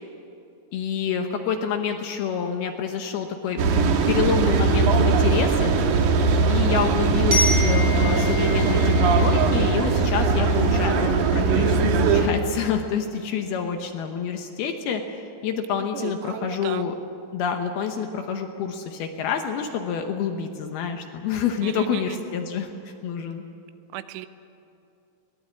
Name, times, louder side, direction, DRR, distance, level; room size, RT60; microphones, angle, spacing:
voice 1, 0.7-5.7 6.5-17.0 17.3-22.7 23.0-23.4, left 7 dB, 70° left, 5 dB, 2.5 m, -28 dB
sound 1, 3.6-12.3, right 4 dB, 65° right, 2.1 m, -20 dB
Glockenspiel, 7.3-10.2, left 2 dB, 30° right, 5.9 m, -29 dB
voice 2, 15.9-16.8 21.6-22.0 23.9-24.3, right 13 dB, 85° right, 12 dB, 3.2 m, -35 dB
22.0 x 18.0 x 8.5 m, 2.6 s
omnidirectional pair, 5.4 m